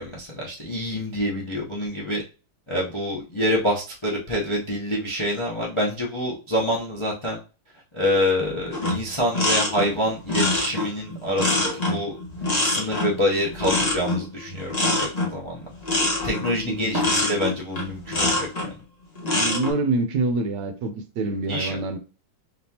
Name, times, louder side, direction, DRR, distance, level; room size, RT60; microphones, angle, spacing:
voice 1, 0.0-2.2 2.7-7.4 7.9-12.1 12.6-15.6 16.2-18.7 21.5-21.8, equal, 45° left, 0.3 m, -26 dB
sound 1, 8.7-18.7 19.2-19.7, left 2 dB, 25° left, 1.0 m, -25 dB
voice 2, 16.7-17.0 19.2-22.0, right 3 dB, 70° right, 1.2 m, -26 dB
4.1 x 3.6 x 2.8 m
omnidirectional pair, 2.2 m